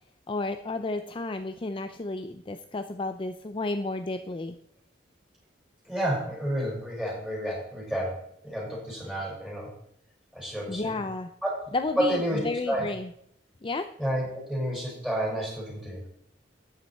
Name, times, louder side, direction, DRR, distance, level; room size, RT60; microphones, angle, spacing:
voice 1, 0.3-4.6 10.7-11.3 11.7-13.1 13.6-13.9, left 2 dB, 30° left, 8 dB, 0.5 m, -32 dB
voice 2, 5.9-9.7 10.3-10.9 11.4-11.5 12.0-12.4 12.7-12.9 14.0-16.0, equal, 5° right, -3 dB, 5.5 m, -30 dB
13.5 x 9.4 x 4.4 m, 0.72 s
head